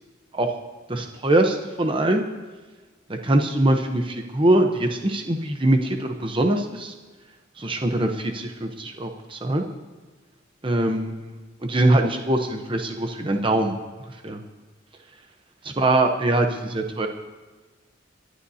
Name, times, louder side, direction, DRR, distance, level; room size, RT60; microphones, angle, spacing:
voice 1, 0.9-2.2 3.1-6.9 7.6-9.6 10.6-11.3 11.6-13.7 14.2-14.4 15.8-17.1, right 1 dB, 25° right, 4 dB, 0.9 m, -22 dB
30.0 x 11.5 x 2.8 m, 1.3 s
head